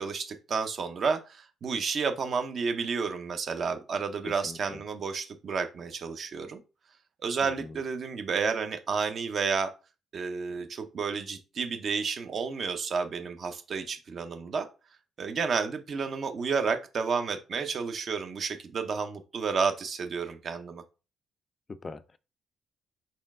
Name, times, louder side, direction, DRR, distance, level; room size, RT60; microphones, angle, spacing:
voice 1, 0.0-6.6 7.2-9.7 10.1-14.7 15.2-20.8, right 5 dB, 55° right, 0.7 m, -31 dB
voice 2, 4.2-4.8 7.4-7.8 21.7-22.2, left 3 dB, 35° left, 0.4 m, -42 dB
4.3 x 3.1 x 3.6 m
cardioid pair, 90°, 0 cm